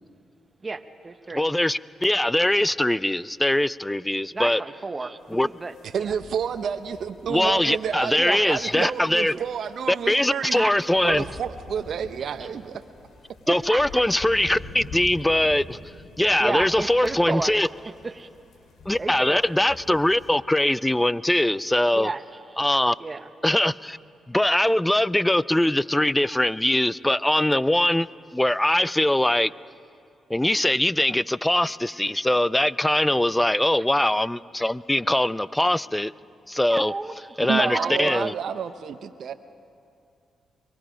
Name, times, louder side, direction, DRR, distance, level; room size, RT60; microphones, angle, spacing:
voice 1, 0.6-1.4 4.3-6.1 8.2-8.8 9.3-9.4 10.5-11.3 13.5-14.0 16.4-17.5 18.0-18.3 19.0-19.5 21.9-22.2 23.0-23.3 36.7-38.3, right 3 dB, 35° right, 10 dB, 1.1 m, -32 dB
voice 2, 1.3-4.6 5.3-5.5 7.3-9.3 9.9-11.2 13.5-15.8 16.2-17.7 18.9-22.1 22.6-23.0 23.4-24.0 24.3-28.1 28.3-29.5 30.3-36.1 36.5-36.9 37.4-38.3, left 1 dB, 10° left, 19 dB, 0.5 m, -22 dB
sound 1, 5.2-20.3, left 3 dB, 75° left, 2.8 m, -46 dB
voice 3, 5.9-10.7 11.0-12.8 37.5-39.3, right 7 dB, 70° right, 10 dB, 0.7 m, -30 dB
23.5 x 23.0 x 5.1 m, 2.4 s
supercardioid pair, 55°, 0 cm